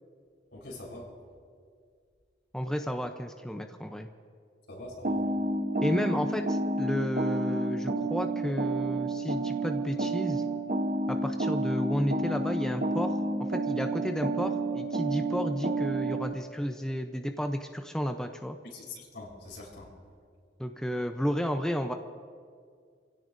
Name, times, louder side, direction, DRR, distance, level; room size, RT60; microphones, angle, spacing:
voice 1, 0.5-1.1 4.7-5.3 18.7-18.9 19.1-19.9, left 1 dB, 80° left, -2 dB, 4.3 m, -43 dB
voice 2, 2.5-4.1 5.8-10.4 11.1-13.2 13.5-18.6 20.6-21.9, equal, 5° left, 5 dB, 0.6 m, -32 dB
sound 1, 5.0-16.3, right 2 dB, 50° right, 1.0 m, -30 dB
27.5 x 16.5 x 2.6 m, 2.1 s
head